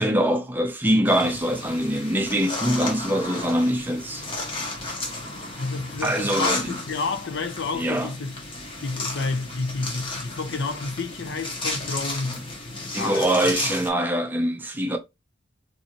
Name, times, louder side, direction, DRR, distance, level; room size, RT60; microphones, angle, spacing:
voice 1, 0.0-4.3 6.0-6.8 7.7-8.1 12.9-15.0, right 1 dB, 10° right, 0.4 m, -23 dB
sound 1, 1.0-13.9, left 2 dB, 25° left, 0.7 m, -33 dB
voice 2, 5.6-8.3 8.8-12.4 13.0-13.3, left 3 dB, 70° left, 0.5 m, -30 dB
2.6 x 2.6 x 2.8 m
head